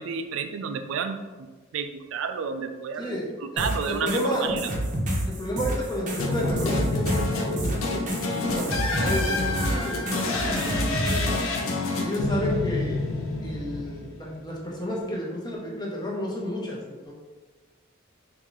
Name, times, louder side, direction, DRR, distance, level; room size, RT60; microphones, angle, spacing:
voice 1, 0.0-1.5 1.7-4.7, right 6 dB, 65° right, 8 dB, 0.3 m, -31 dB
voice 2, 3.5-4.5 5.3-11.3 12.0-13.0 13.4-16.8 17.1-17.2, left 1 dB, 20° left, -3 dB, 0.7 m, -31 dB
sound 1, 3.6-11.4, equal, 40° right, 0.7 m, -29 dB
sound 2, 6.2-14.4, left 2 dB, 75° left, 0.5 m, -28 dB
3.7 x 2.6 x 3.0 m, 1.3 s
head